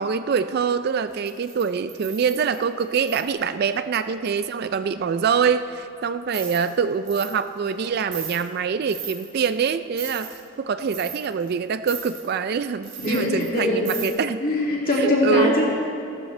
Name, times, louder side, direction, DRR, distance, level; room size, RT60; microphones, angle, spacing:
voice 1, 0.0-14.4 14.9-15.5, right 6 dB, 50° right, 11 dB, 0.3 m, -25 dB
sound 1, 1.2-3.3 6.3-6.7 7.1-7.3 7.7-7.8 8.1-8.4 8.9-9.5 10.0-10.4 10.9-11.5 11.9-12.2 12.8-13.6 13.8-14.1, right 8 dB, 85° right, 3.1 m, -36 dB
voice 2, 13.0-13.9 14.4-15.7, left 1 dB, 40° left, -4 dB, 2.4 m, -22 dB
16.5 x 12.5 x 3.2 m, 2.5 s
head